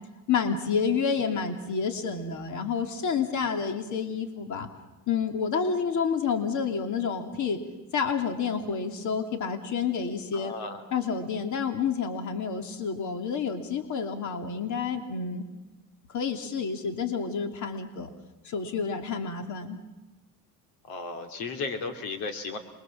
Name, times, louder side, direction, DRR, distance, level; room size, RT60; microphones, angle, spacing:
voice 1, 0.3-4.7 5.1-7.6 7.9-10.5 10.9-15.4 16.1-18.1 18.4-19.8, left 6 dB, 55° left, 6 dB, 2.8 m, -29 dB
voice 2, 10.3-10.8 20.9-22.6, left 4 dB, 85° left, 6 dB, 3.2 m, -34 dB
27.5 x 22.5 x 7.4 m, 1.1 s
cardioid pair, 105°, 35 cm